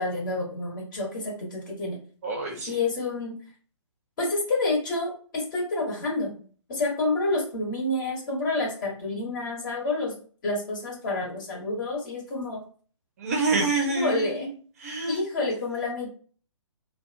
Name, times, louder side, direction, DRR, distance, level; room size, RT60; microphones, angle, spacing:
voice 1, 0.0-2.0 2.7-3.4 4.2-6.4 6.7-10.1 10.4-12.6 13.7-14.5 15.1-16.1, left 2 dB, 40° left, -2 dB, 1.2 m, -28 dB
voice 2, 2.2-2.8 13.2-14.5 14.8-15.2, right 3 dB, 30° right, 1 dB, 0.5 m, -27 dB
2.4 x 2.2 x 2.5 m, 0.42 s
figure-of-eight pair, 135°, 16 cm